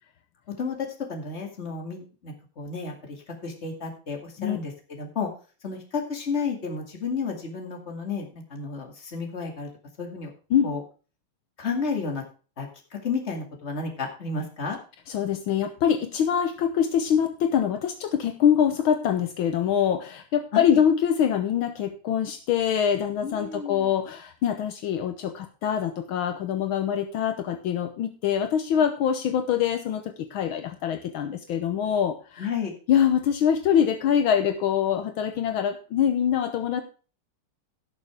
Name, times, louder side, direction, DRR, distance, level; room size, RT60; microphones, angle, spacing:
voice 1, 0.5-3.2 3.4-5.3 5.6-9.7 10.0-10.3 10.6-10.8 11.6-12.2 12.6-12.7 13.0-14.8 20.5-20.8 23.2-23.9 32.4-32.7, left 5 dB, 30° left, 1 dB, 2.3 m, -32 dB
voice 2, 15.1-32.5 32.9-36.8, left 8 dB, 75° left, 7 dB, 1.7 m, -24 dB
17.0 x 6.6 x 3.5 m, 0.36 s
omnidirectional pair, 2.3 m